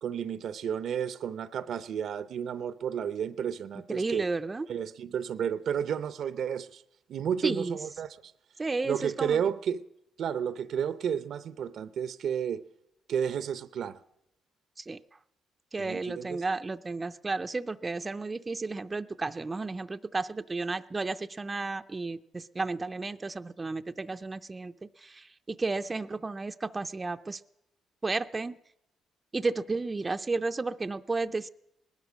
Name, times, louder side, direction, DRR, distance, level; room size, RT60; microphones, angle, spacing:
voice 1, 0.0-4.3 4.7-6.8 7.1-8.1 8.8-9.8 10.2-12.6 13.1-14.0 15.8-16.4, right 8 dB, 65° right, 0.6 m, -32 dB
voice 2, 3.9-4.7 7.4-7.8 8.6-9.4 14.8-15.0 15.7-27.4 28.0-28.5 29.3-31.5, right 3 dB, 25° right, 0.5 m, -33 dB
19.0 x 12.0 x 6.2 m
cardioid pair, 90°, 0 cm